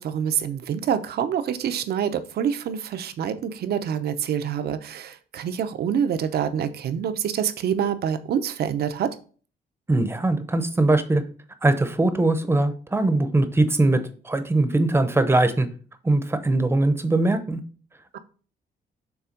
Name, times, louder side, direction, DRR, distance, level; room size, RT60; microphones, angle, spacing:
voice 1, 0.0-9.1 18.1-18.2, right 8 dB, 65° right, 10 dB, 0.8 m, -26 dB
voice 2, 9.9-11.2 11.6-14.0 14.3-15.7 16.0-17.6, right 2 dB, 15° right, 10 dB, 0.7 m, -21 dB
7.2 x 3.4 x 5.1 m, 0.40 s
cardioid pair, 130°, 17 cm